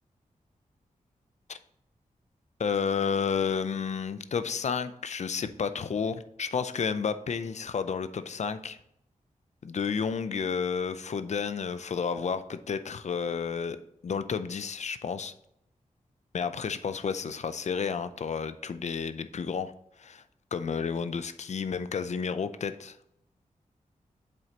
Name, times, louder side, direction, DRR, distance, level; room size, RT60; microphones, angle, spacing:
voice 1, 2.6-8.8 9.6-13.8 14.0-15.3 16.3-20.2 20.5-23.0, left 6 dB, 60° left, 12 dB, 0.5 m, -31 dB
7.8 x 7.6 x 2.9 m, 0.75 s
wide cardioid pair, 100°, 13 cm